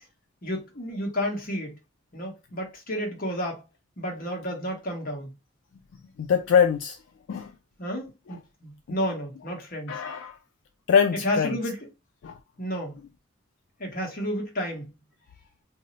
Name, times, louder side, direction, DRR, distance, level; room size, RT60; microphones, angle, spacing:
voice 1, 0.4-1.8 2.1-3.6 4.0-5.3 7.8-10.0 11.2-11.9 12.6-13.0 13.8-14.9, equal, 45° left, 1.1 m, -31 dB
voice 2, 6.2-7.0 7.3-7.5 8.9-9.0 9.9-10.4 10.9-11.6 12.2-12.3, left 7 dB, 75° left, 0.3 m, -23 dB
2.6 x 2.0 x 3.9 m
head